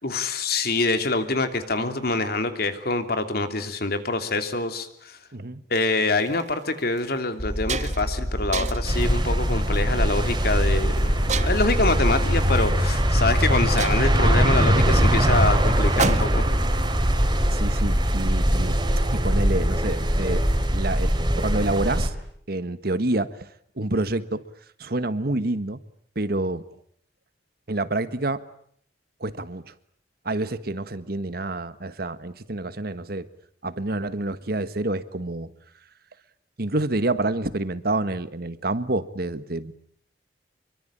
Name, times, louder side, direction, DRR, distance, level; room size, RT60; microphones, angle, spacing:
voice 1, 0.0-5.1 5.7-16.5, left 3 dB, 60° left, 8 dB, 3.0 m, -25 dB
sound 1, 6.2-6.4 7.0-7.1 7.4-8.1 8.5-9.0 9.6-9.9 11.3-11.8 13.0-13.1 13.4-13.5 13.8-16.6, right 5 dB, 45° right, 1.5 m, -31 dB
sound 2, 7.4-14.7, equal, 15° left, 2.2 m, -27 dB
sound 3, 8.8-22.1, equal, 25° right, 3.7 m, -22 dB
voice 2, 17.5-18.8 19.1-20.4 20.7-21.1 21.4-22.1 22.5-23.5 23.8-24.4 24.8-25.8 26.1-26.6 27.7-28.4 29.2-29.7 30.2-33.3 33.6-35.5 36.6-39.7, right 2 dB, 60° right, 13 dB, 1.5 m, -27 dB
26.0 x 23.5 x 8.9 m, 0.64 s
head